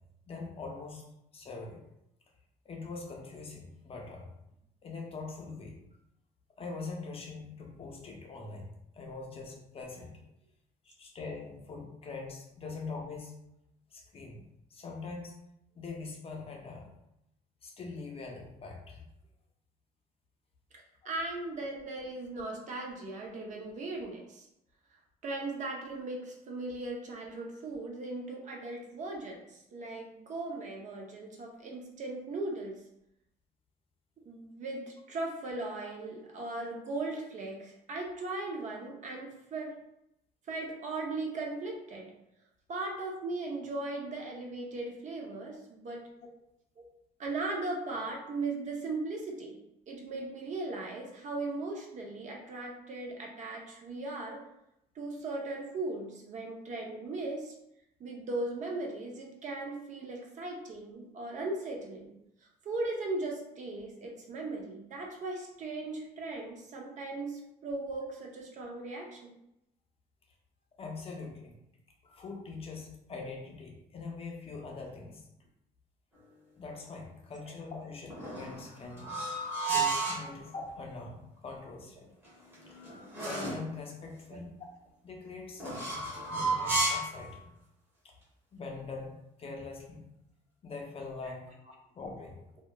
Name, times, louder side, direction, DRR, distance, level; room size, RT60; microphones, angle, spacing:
voice 1, 0.3-1.0 1.3-1.8 2.6-4.3 4.8-5.8 6.6-10.1 10.8-13.3 13.9-15.4 15.7-16.9 17.6-19.0 21.0-21.1 70.8-71.6 72.0-75.3 76.6-79.2 79.7-82.1 82.7-82.8 83.2-84.7 85.0-87.5 88.0-88.1 88.5-90.0 90.6-91.5 91.9-92.4, left 3 dB, 35° left, 0 dB, 0.5 m, -43 dB
voice 2, 20.7-24.5 25.2-32.8 34.2-39.8 40.5-42.1 42.7-46.0 46.8-46.9 47.2-49.6 49.9-54.5 54.9-57.5 58.0-62.1 62.6-69.3, right 2 dB, 45° right, 0 dB, 0.6 m, -38 dB
sound 1, 78.1-80.3 82.2-83.7 85.6-87.2, right 3 dB, 15° right, 1.1 m, -32 dB
2.9 x 2.2 x 2.2 m, 0.82 s
cardioid pair, 110°, 17 cm